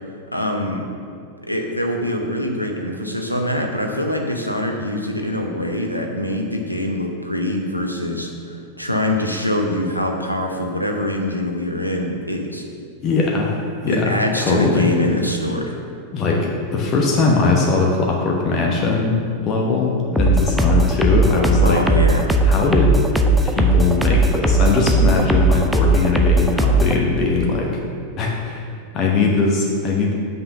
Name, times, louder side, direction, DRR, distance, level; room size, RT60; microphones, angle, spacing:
voice 1, 0.3-0.9 1.4-12.6 13.9-15.7 21.6-22.3, left 1 dB, 90° left, 2 dB, 0.7 m, -24 dB
voice 2, 13.0-14.9 16.1-19.2 19.4-21.8 22.4-23.0 23.4-27.8 28.2-28.7 28.9-30.1, left 3 dB, 30° left, -1 dB, 1.0 m, -20 dB
sound 1, 20.2-27.0, right 1 dB, 5° right, 0.6 m, -17 dB
6.1 x 5.6 x 6.6 m, 2.3 s
figure-of-eight pair, 90°, 0 cm